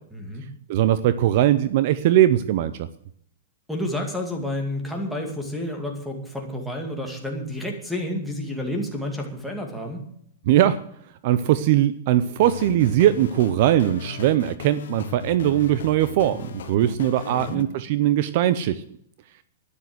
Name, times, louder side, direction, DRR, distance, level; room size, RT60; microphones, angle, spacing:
voice 1, 0.1-0.4 3.7-10.0 16.7-17.0 17.3-17.6, left 1 dB, ahead, 3 dB, 2.3 m, -30 dB
voice 2, 0.7-2.9 10.5-10.8 11.2-18.8, right 12 dB, 45° right, 14 dB, 0.6 m, -20 dB
sound 1, 12.4-17.6, left 7 dB, 75° left, 1.3 m, -37 dB
12.0 x 9.9 x 7.9 m, 0.69 s
supercardioid pair, 170°, 0 cm